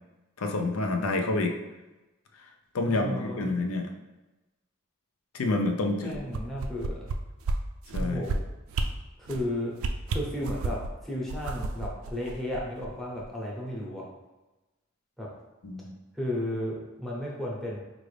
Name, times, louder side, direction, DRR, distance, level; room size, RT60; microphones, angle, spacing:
voice 1, 0.4-1.5 2.7-3.9 5.3-6.2 7.9-8.2 15.6-15.9, left 2 dB, 85° left, 4 dB, 0.5 m, -28 dB
voice 2, 2.8-3.5 6.0-7.1 8.0-8.4 9.2-9.7 10.1-14.1 15.2-15.3 16.1-17.8, left 1 dB, ahead, -4 dB, 0.8 m, -34 dB
sound 1, 6.1-7.1 7.4-7.6 7.9-8.4 8.7-8.9 9.3-9.4 9.8-10.9 11.3-12.9 13.2-13.3, right 4 dB, 80° right, 0.4 m, -31 dB
4.7 x 2.5 x 3.2 m, 1.1 s
head